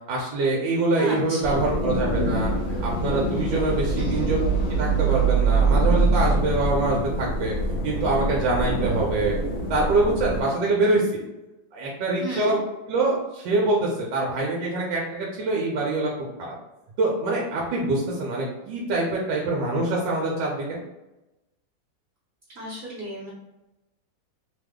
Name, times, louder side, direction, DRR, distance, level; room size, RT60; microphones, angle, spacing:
voice 1, 0.1-2.5 2.8-4.5 4.8-7.5 7.8-9.3 9.7-11.2 11.7-12.6 12.9-16.1 16.4-16.6 17.0-20.8, right 2 dB, 75° right, -3 dB, 1.3 m, -24 dB
voice 2, 1.0-1.6 3.9-4.3 12.2-12.5 22.5-23.3, right 1 dB, 45° right, -8 dB, 0.9 m, -34 dB
sound 1, 1.4-10.4, right 3 dB, 50° left, 0.8 m, -24 dB
3.2 x 2.0 x 3.5 m, 0.98 s
omnidirectional pair, 2.1 m